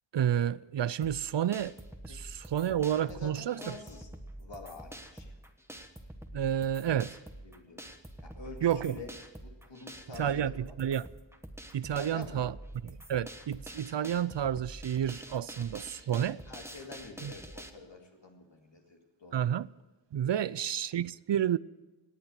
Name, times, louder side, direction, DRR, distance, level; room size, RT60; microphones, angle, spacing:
voice 1, 0.1-1.7 2.1-3.7 6.3-7.2 8.6-9.0 10.1-11.1 11.7-12.5 12.8-16.4 17.2-17.3 19.3-19.7 20.1-21.6, right 10 dB, 65° right, 0.5 m, -30 dB
sound 1, 1.0-17.7, right 1 dB, 5° right, 1.3 m, -47 dB
voice 2, 2.1-2.4 3.0-4.1 4.4-5.3 7.4-7.8 8.2-9.1 9.4-10.7 12.0-12.5 16.5-19.4 20.3-20.6, left 3 dB, 70° left, 2.4 m, -47 dB
18.0 x 8.8 x 8.1 m
wide cardioid pair, 45°, 46 cm